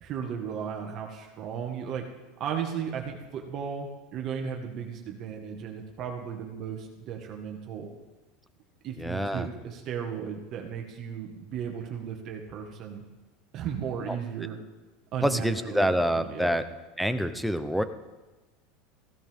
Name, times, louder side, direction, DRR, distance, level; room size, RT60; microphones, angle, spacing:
voice 1, 0.0-2.0 2.4-7.9 8.8-13.0 13.5-14.6 15.1-15.9 16.2-16.5, right 7 dB, 40° right, 2 dB, 1.7 m, -35 dB
voice 2, 9.0-9.5 14.1-14.2 15.2-16.7 17.0-17.8, equal, ahead, 10 dB, 0.8 m, -26 dB
16.5 x 15.5 x 3.7 m, 1.2 s
supercardioid pair, 140°, 0 cm